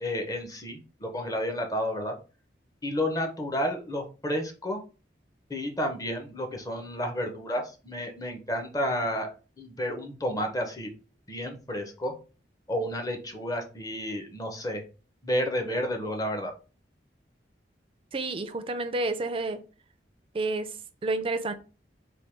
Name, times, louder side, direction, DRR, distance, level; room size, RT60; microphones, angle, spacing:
voice 1, 0.0-2.1 2.8-4.8 5.5-9.3 9.6-10.9 11.3-12.1 12.7-14.8 15.2-16.5, equal, 20° left, 0.7 m, -31 dB
voice 2, 18.1-19.6 20.3-21.5, right 2 dB, 30° right, 0.4 m, -30 dB
3.4 x 2.3 x 4.3 m
head